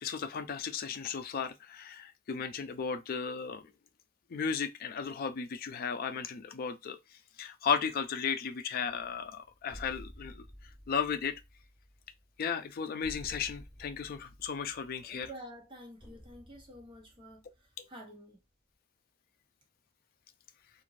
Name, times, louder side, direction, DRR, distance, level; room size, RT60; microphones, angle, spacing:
voice 1, 0.0-3.6 4.3-7.0 7.4-10.4 10.9-11.3 12.4-15.3 17.8-17.9, left 6 dB, 50° left, 0.4 m, -35 dB
sound 1, 8.8-18.3, equal, 5° right, 1.1 m, -53 dB
voice 2, 14.8-17.4 17.9-18.4, right 1 dB, 25° right, 0.7 m, -49 dB
2.5 x 2.4 x 3.1 m
head